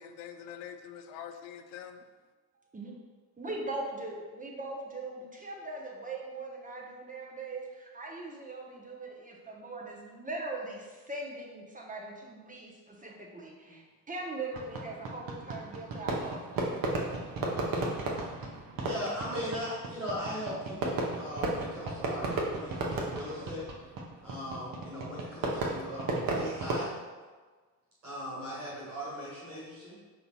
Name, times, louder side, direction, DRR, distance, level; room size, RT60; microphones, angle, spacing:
voice 1, 0.0-2.0, left 8 dB, 60° left, 8 dB, 0.5 m, -45 dB
voice 2, 3.4-16.7, right 2 dB, 15° right, -1 dB, 0.8 m, -40 dB
Fireworks, 14.5-26.8, right 2 dB, 45° right, 0.9 m, -34 dB
voice 3, 18.8-23.7 24.2-26.9 28.0-30.0, equal, 85° right, -7 dB, 1.5 m, -39 dB
5.7 x 3.9 x 2.2 m, 1.4 s
figure-of-eight pair, 45°, 48 cm